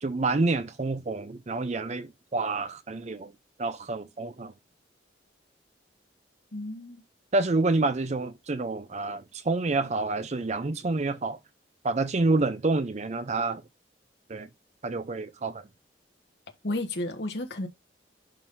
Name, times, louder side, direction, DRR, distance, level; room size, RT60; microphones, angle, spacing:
voice 1, 0.0-3.3 3.6-4.5 7.3-11.4 11.8-13.6 14.3-14.5 14.8-15.6, right 3 dB, 40° right, 0.5 m, -28 dB
voice 2, 6.5-7.0 16.6-17.7, left 1 dB, 65° left, 1.4 m, -32 dB
10.5 x 3.8 x 2.7 m
head